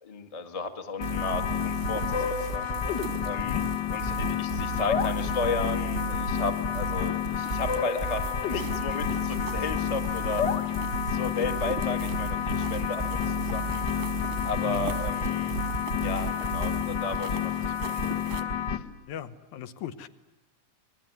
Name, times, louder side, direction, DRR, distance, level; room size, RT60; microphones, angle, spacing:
voice 1, 0.0-2.7 3.2-3.5 3.9-10.4 11.1-13.8 14.4-15.5 16.0-18.0 18.7-18.8, left 3 dB, 20° left, 7 dB, 1.0 m, -34 dB
sound 1, 1.0-18.8, left 8 dB, 45° left, 1.5 m, -30 dB
sound 2, 1.0-16.8, right 5 dB, 55° right, 1.0 m, -36 dB
sound 3, 1.5-18.4, right 7 dB, 85° right, 3.3 m, -44 dB
voice 2, 19.1-20.1, left 11 dB, 75° left, 11 dB, 2.4 m, -38 dB
26.5 x 21.0 x 9.6 m, 1.0 s
omnidirectional pair, 3.6 m